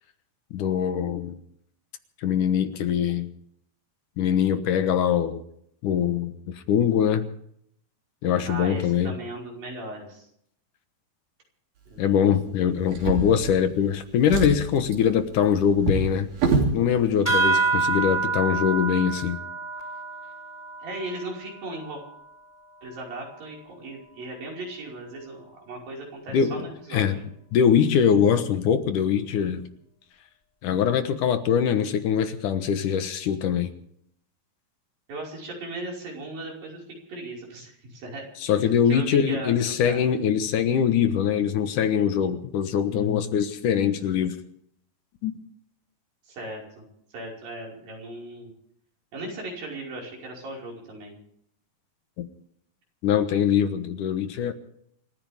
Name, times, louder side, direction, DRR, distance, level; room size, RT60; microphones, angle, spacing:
voice 1, 0.5-1.4 2.2-3.3 4.2-5.4 5.8-6.3 6.7-7.3 8.2-9.1 12.0-16.3 16.7-19.4 26.3-26.7 26.9-27.2 27.5-29.6 30.6-33.7 38.4-44.3 45.2-45.4 52.2-52.3 53.0-54.5, left 8 dB, 70° left, 2.6 m, -23 dB
voice 2, 8.5-10.3 11.9-12.2 20.8-22.0 22.8-27.1 35.1-36.8 37.1-38.3 38.9-40.0 46.3-46.8 47.1-48.5 49.1-51.2, right 2 dB, 85° right, 7.1 m, -37 dB
Drawer open or close, 12.9-13.9 14.2-16.8 17.7-17.8 18.2-18.3, right 4 dB, 65° right, 4.5 m, -27 dB
sound 1, 17.3-22.2, right 4 dB, 5° left, 4.3 m, -27 dB
27.5 x 14.5 x 3.6 m
omnidirectional pair, 4.0 m